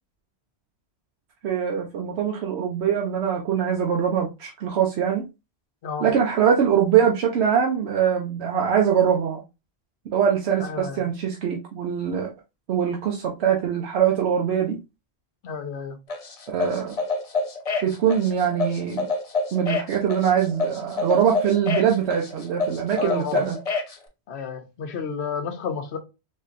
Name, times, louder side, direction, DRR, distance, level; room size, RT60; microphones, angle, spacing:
voice 1, 1.4-5.2 6.0-9.4 10.1-12.3 12.7-14.8 16.5-17.0 17.8-19.1 19.5-23.6, right 8 dB, 80° right, 0.9 m, -23 dB
voice 2, 10.6-11.0 15.4-16.0 23.0-23.4 24.3-26.0, left 6 dB, 75° left, 1.0 m, -31 dB
sound 1, 16.1-23.9, left 3 dB, 40° left, 0.6 m, -27 dB
3.8 x 2.7 x 2.4 m
omnidirectional pair, 1.1 m